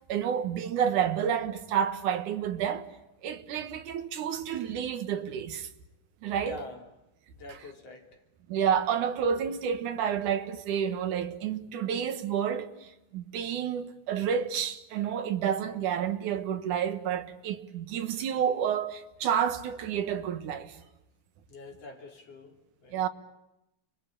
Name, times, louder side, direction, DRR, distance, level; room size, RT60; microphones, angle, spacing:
voice 1, 0.1-2.9 3.2-5.7 6.2-6.6 7.5-7.6 8.5-12.7 13.1-20.8 22.9-23.1, right 8 dB, 85° right, 2.9 m, -29 dB
voice 2, 6.4-6.8 7.4-8.1 21.5-23.1, left 3 dB, 55° left, 4.1 m, -45 dB
30.0 x 23.0 x 8.7 m
omnidirectional pair, 3.4 m